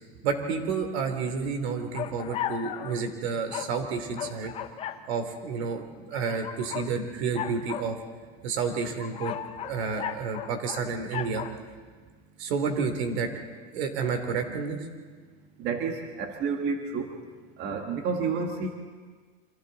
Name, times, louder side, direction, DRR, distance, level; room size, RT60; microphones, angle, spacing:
voice 1, 0.2-4.5 5.1-8.0 8.4-9.3 9.6-11.4 12.4-13.3 13.7-14.8, right 5 dB, 75° right, 6 dB, 3.0 m, -30 dB
sound 1, 1.9-3.0 3.5-3.7 4.2-5.0 6.1-6.9 7.3-7.9 8.7-10.8 11.1-11.5, left 10 dB, 20° left, 0.5 m, -35 dB
voice 2, 15.6-17.1 17.6-18.7, right 5 dB, 35° right, 4 dB, 1.5 m, -30 dB
29.0 x 24.5 x 4.0 m, 1.5 s
supercardioid pair, 170°, 32 cm